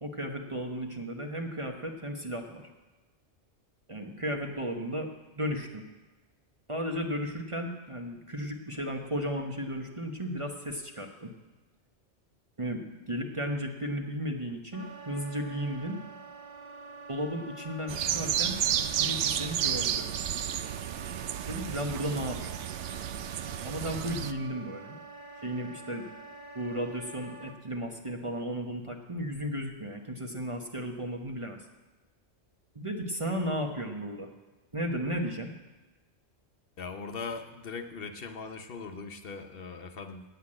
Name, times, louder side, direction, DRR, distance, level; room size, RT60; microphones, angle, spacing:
voice 1, 0.0-2.6 3.9-5.1 5.4-5.8 6.7-11.3 12.6-16.0 17.1-18.6 19.0-20.1 21.5-22.6 23.6-25.0 25.4-26.1 26.5-31.6 32.7-34.3 34.7-35.5, equal, 30° right, 2 dB, 1.0 m, -34 dB
Wind instrument woodwind instrument, 14.7-27.6, right 3 dB, 55° right, 1.3 m, -47 dB
sound 1, 17.9-24.3, right 10 dB, 75° right, 0.9 m, -31 dB
voice 2, 36.8-40.2, left 4 dB, 55° left, 6 dB, 0.9 m, -40 dB
8.8 x 8.0 x 8.7 m, 1.2 s
omnidirectional pair, 1.2 m